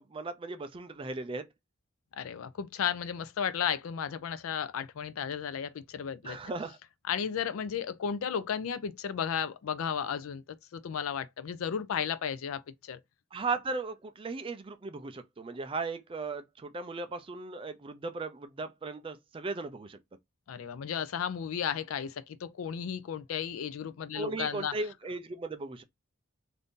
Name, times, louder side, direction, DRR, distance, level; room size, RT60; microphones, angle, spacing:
voice 1, 0.0-1.4 6.2-6.8 13.3-20.0 24.1-25.8, right 3 dB, 25° right, 0.3 m, -37 dB
voice 2, 2.2-6.4 7.0-10.4 10.7-13.0 20.5-24.7, left 8 dB, 75° left, 0.4 m, -34 dB
2.6 x 2.6 x 3.5 m
head